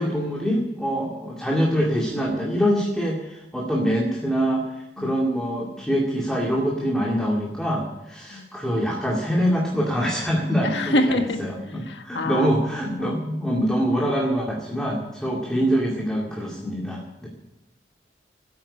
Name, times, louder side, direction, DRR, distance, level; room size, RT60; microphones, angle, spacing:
voice 1, 0.0-17.3, equal, 5° left, -2 dB, 2.2 m, -24 dB
voice 2, 10.6-12.5 12.9-13.6 15.3-15.7, left 2 dB, 90° left, 5 dB, 1.6 m, -28 dB
15.5 x 8.5 x 9.9 m, 0.95 s
head